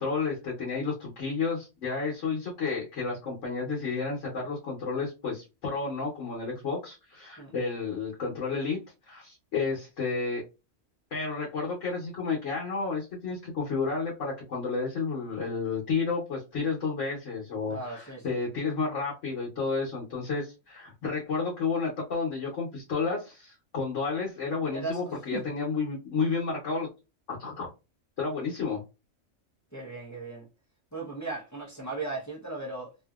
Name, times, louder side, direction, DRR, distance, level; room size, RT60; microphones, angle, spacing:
voice 1, 0.0-8.8 9.1-10.4 11.1-26.9 27.3-27.7 28.2-28.8, left 4 dB, 75° left, 1.2 m, -31 dB
voice 2, 17.7-18.4 24.7-25.4 29.7-30.5 30.9-33.1, right 3 dB, 20° left, 0.6 m, -37 dB
2.7 x 2.6 x 2.3 m
omnidirectional pair, 1.3 m